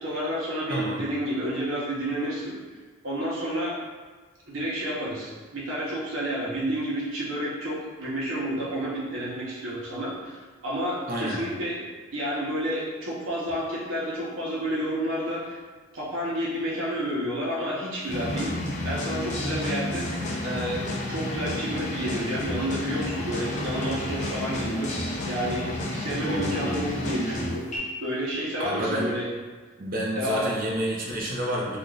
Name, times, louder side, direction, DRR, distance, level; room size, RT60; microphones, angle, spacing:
voice 1, 0.0-2.6 3.0-3.8 4.5-11.8 12.1-15.6 15.9-18.5 18.8-20.1 20.4-24.9 25.3-27.7 28.0-29.3 30.1-30.5, equal, 75° right, -6 dB, 0.9 m, -30 dB
voice 2, 0.7-1.0 11.1-11.4 26.2-26.9 28.6-29.1 29.8-31.8, right 1 dB, 45° right, -3 dB, 0.6 m, -29 dB
sound 1, 18.1-27.8, left 1 dB, 35° left, 0.5 m, -31 dB
3.5 x 2.5 x 2.3 m, 1.4 s
head